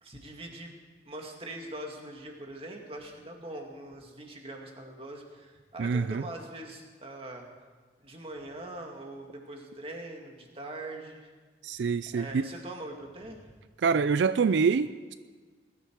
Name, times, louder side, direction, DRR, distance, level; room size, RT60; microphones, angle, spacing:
voice 1, 0.0-0.7 1.1-7.5 8.0-11.3 12.1-13.4, right 1 dB, 30° right, 2 dB, 2.1 m, -42 dB
voice 2, 5.8-6.2 11.6-12.5 13.8-15.1, right 5 dB, 80° right, 13 dB, 0.4 m, -26 dB
20.5 x 13.0 x 4.7 m, 1.5 s
head